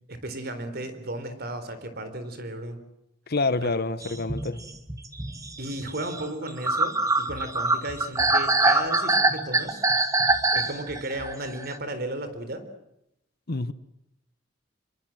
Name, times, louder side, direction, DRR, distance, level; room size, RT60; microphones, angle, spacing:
voice 1, 0.1-2.8 3.6-3.7 5.6-9.9 10.5-12.6, right 1 dB, 55° right, 4.1 m, -34 dB
voice 2, 3.3-4.6 13.5-13.7, left 3 dB, 55° left, 1.1 m, -27 dB
sound 1, 4.0-11.8, right 2 dB, 20° right, 1.8 m, -24 dB
27.0 x 23.0 x 7.8 m
head